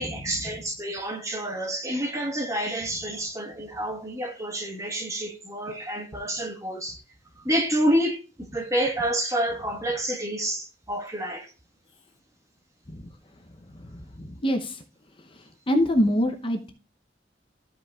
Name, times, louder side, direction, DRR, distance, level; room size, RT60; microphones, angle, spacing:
voice 1, 0.0-7.0 7.4-11.5, right 1 dB, 15° right, 1.3 m, -28 dB
voice 2, 13.8-14.8 15.2-16.7, equal, 30° left, 0.7 m, -26 dB
14.0 x 5.3 x 2.4 m
head